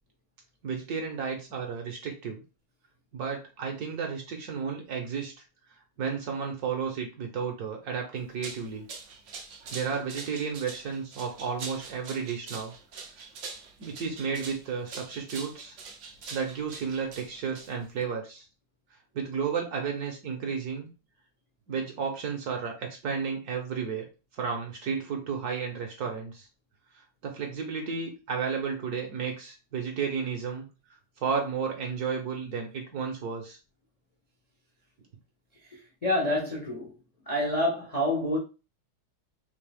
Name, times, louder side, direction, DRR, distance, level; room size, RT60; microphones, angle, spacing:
voice 1, 0.6-2.4 3.1-5.3 6.0-8.9 9.7-12.7 13.8-15.8 16.3-18.4 19.1-20.9 21.7-24.0 24.3-26.5 27.2-30.6 31.2-33.6, right 6 dB, 60° right, 1.1 m, -32 dB
sound 1, 8.2-18.0, right 4 dB, 90° right, 0.6 m, -44 dB
voice 2, 35.7-36.9 37.3-38.4, left 1 dB, 45° left, 0.4 m, -28 dB
3.7 x 2.9 x 3.3 m
omnidirectional pair, 2.2 m